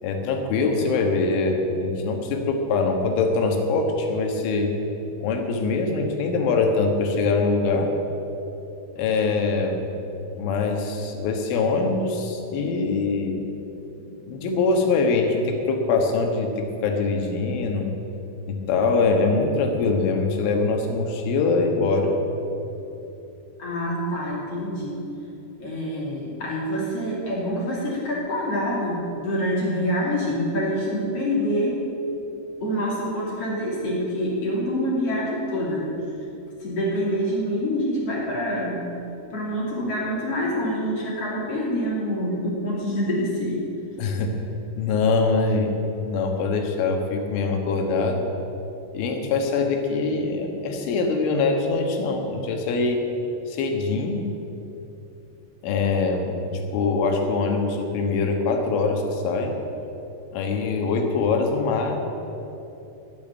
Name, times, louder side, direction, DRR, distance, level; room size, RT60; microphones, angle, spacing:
voice 1, 0.0-4.7 5.2-7.9 9.0-9.9 10.4-13.4 14.0-17.9 18.5-22.1 44.0-44.3 44.8-45.7 46.0-48.3 48.9-53.0 53.5-54.2 55.6-59.5 60.3-62.0, left 3 dB, 80° left, 3 dB, 3.9 m, -23 dB
voice 2, 23.6-25.0 25.6-31.8 32.6-35.8 36.6-38.8 39.3-43.6, equal, 40° left, -5 dB, 3.0 m, -26 dB
12.5 x 8.5 x 9.7 m, 3.0 s
omnidirectional pair, 5.6 m